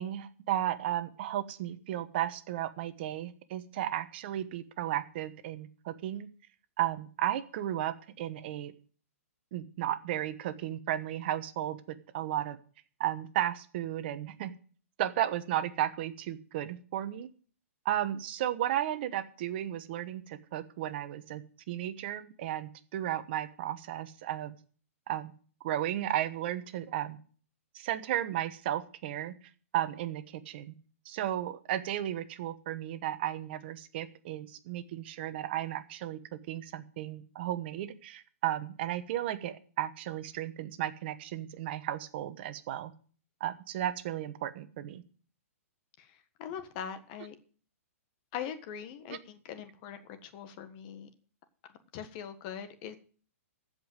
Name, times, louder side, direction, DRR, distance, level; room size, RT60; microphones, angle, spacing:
voice 1, 0.0-6.3 6.8-8.7 9.5-12.6 13.0-14.5 15.0-17.3 17.8-24.5 25.1-25.3 25.6-27.2 27.7-29.4 29.7-30.7 31.0-36.2 36.5-42.9 43.4-45.0 49.1-49.2, right 12 dB, 45° right, 12 dB, 1.1 m, -34 dB
voice 2, 46.4-47.4 48.3-51.1 51.9-53.0, left 8 dB, 35° left, 9 dB, 1.5 m, -41 dB
15.0 x 5.3 x 8.0 m, 0.43 s
hypercardioid pair, 150°, 8 cm